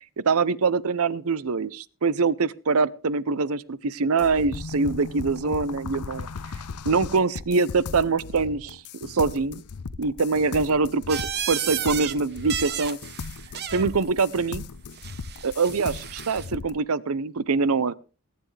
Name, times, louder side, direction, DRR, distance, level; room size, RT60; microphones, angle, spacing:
voice 1, 0.2-6.3 6.8-9.6 10.0-11.2 11.5-13.0 13.7-14.7 15.4-17.9, right 4 dB, 70° right, 19 dB, 0.7 m, -24 dB
sound 1, 4.2-16.8, left 4 dB, 80° left, 0.7 m, -37 dB
sound 2, 11.1-12.2 12.4-13.9 15.0-16.5, right 9 dB, 50° right, 1.0 m, -33 dB
22.0 x 10.0 x 3.3 m, 0.34 s
head